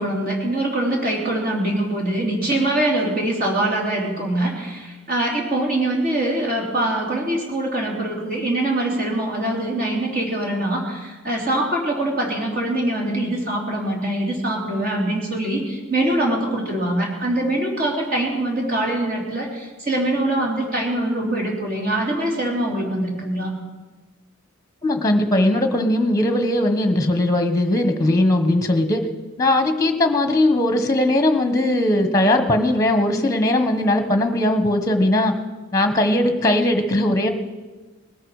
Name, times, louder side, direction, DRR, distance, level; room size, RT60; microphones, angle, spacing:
voice 1, 0.0-23.5, right 1 dB, 40° right, -2 dB, 3.6 m, -23 dB
voice 2, 24.8-29.0 29.4-35.3 35.7-37.3, left 1 dB, 15° left, 7 dB, 1.3 m, -19 dB
20.5 x 13.5 x 5.0 m, 1.3 s
head